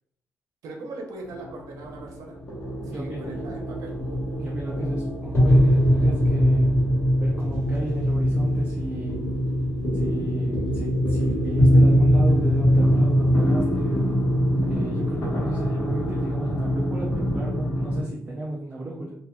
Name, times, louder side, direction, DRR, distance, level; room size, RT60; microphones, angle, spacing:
voice 1, 0.6-2.4 2.8-3.9, right 2 dB, 75° right, 1 dB, 0.6 m, -39 dB
sound 1, 1.2-18.0, equal, 40° left, 1.0 m, -22 dB
voice 2, 2.8-3.5 4.4-6.8 7.2-9.2 9.9-14.1 14.7-19.1, right 1 dB, 20° right, -3 dB, 0.4 m, -34 dB
2.8 x 2.3 x 2.2 m, 0.76 s
cardioid pair, 140°, 6 cm